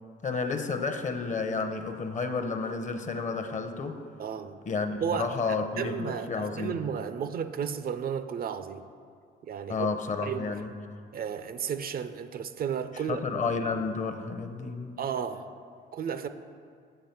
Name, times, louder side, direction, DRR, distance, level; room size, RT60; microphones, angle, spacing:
voice 1, 0.2-4.0 4.7-6.8 9.7-10.7 13.1-15.0, left 4 dB, 40° left, 7 dB, 0.7 m, -31 dB
voice 2, 4.2-4.6 5.0-5.3 5.8-8.8 9.4-9.9 10.2-10.6 11.1-13.2 15.0-15.5 15.9-16.3, right 7 dB, 50° right, 11 dB, 0.4 m, -33 dB
7.9 x 4.9 x 5.9 m, 2.3 s
cardioid pair, 90°, 20 cm